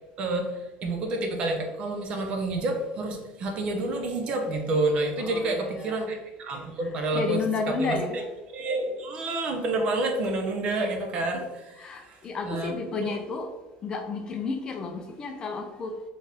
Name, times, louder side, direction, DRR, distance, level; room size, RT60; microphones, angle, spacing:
voice 1, 0.2-7.4 7.8-8.0 8.5-12.7 13.0-13.2, right 2 dB, 40° right, 3 dB, 0.8 m, -29 dB
voice 2, 5.2-6.0 6.8-8.2 11.7-13.5 13.8-15.9, left 4 dB, 25° left, 4 dB, 0.5 m, -32 dB
4.6 x 3.2 x 3.4 m, 1.1 s
cardioid pair, 170°, 3 cm